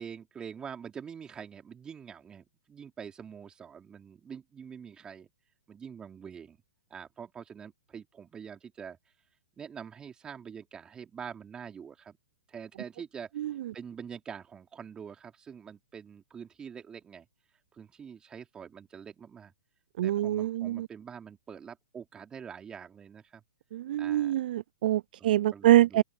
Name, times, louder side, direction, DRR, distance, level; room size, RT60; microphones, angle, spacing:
voice 1, 0.0-5.3 5.7-6.6 6.9-9.1 9.6-12.2 12.5-17.3 17.7-19.5 20.0-23.4 24.0-24.3 25.2-26.0, right 7 dB, 15° right, 3.4 m, -45 dB
voice 2, 20.0-20.9 23.7-26.0, right 14 dB, 55° right, 0.4 m, -25 dB
open air
hypercardioid pair, 140°, 6 cm